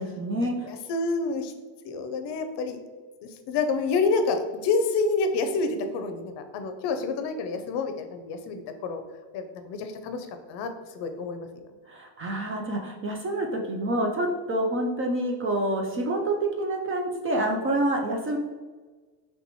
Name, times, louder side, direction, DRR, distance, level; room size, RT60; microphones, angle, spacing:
voice 1, 0.0-0.7 11.9-18.4, right 1 dB, 30° right, 2 dB, 0.5 m, -27 dB
voice 2, 0.6-1.5 1.8-2.8 3.2-9.0 9.3-11.5, left 3 dB, 60° left, 7 dB, 0.6 m, -28 dB
3.4 x 3.0 x 4.0 m, 1.4 s
cardioid pair, 125°, 46 cm